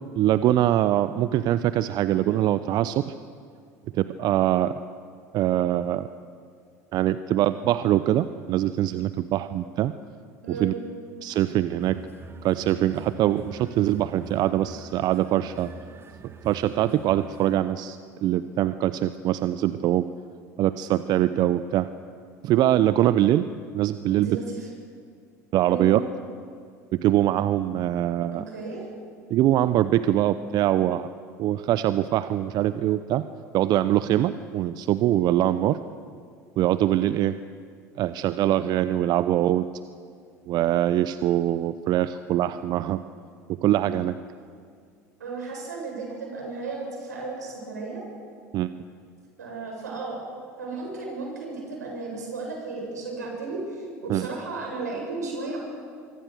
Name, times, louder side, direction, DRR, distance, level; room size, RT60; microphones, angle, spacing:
voice 1, 0.2-3.1 3.9-4.8 5.3-6.1 6.9-9.9 10.5-10.7 11.2-12.0 12.4-15.7 16.2-20.1 20.6-21.9 22.4-23.5 23.7-24.4 25.5-26.0 26.9-28.4 29.3-31.1 31.4-33.3 33.5-35.8 36.6-37.3 38.0-39.7 40.5-43.0 43.5-44.2 48.5-48.7 54.1-54.2, right 13 dB, 50° right, 13 dB, 0.8 m, -23 dB
voice 2, 10.4-10.9 24.1-24.7 25.7-26.0 28.3-28.9 45.2-48.0 49.4-50.2 50.6-55.6, right 3 dB, 85° right, 0 dB, 7.7 m, -34 dB
sound 1, 11.8-17.6, right 5 dB, 30° right, 2.0 m, -45 dB
25.0 x 24.5 x 6.7 m, 2.2 s
hypercardioid pair, 70°, 9 cm